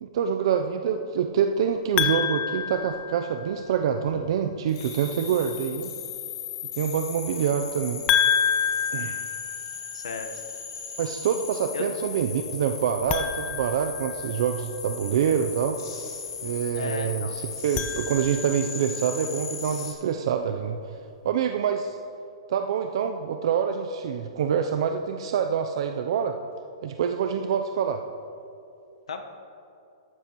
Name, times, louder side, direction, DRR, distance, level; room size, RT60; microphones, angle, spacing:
voice 1, 0.0-5.9 6.8-8.0 8.9-9.2 11.0-15.8 16.4-20.8 21.2-22.0 22.5-26.4 26.8-28.0, right 8 dB, 60° right, 6 dB, 0.5 m, -26 dB
sound 1, 2.0-3.7 8.1-10.1 13.0-14.6 17.5-18.7, left 8 dB, 25° left, 0.5 m, -28 dB
sound 2, 4.7-19.9, left 6 dB, 55° left, 3.1 m, -37 dB
voice 2, 9.9-10.4 11.7-11.9 16.7-17.3 29.1-29.2, left 5 dB, 90° left, 5 dB, 1.2 m, -34 dB
13.5 x 12.5 x 3.1 m, 2.7 s
hypercardioid pair, 150°, 3 cm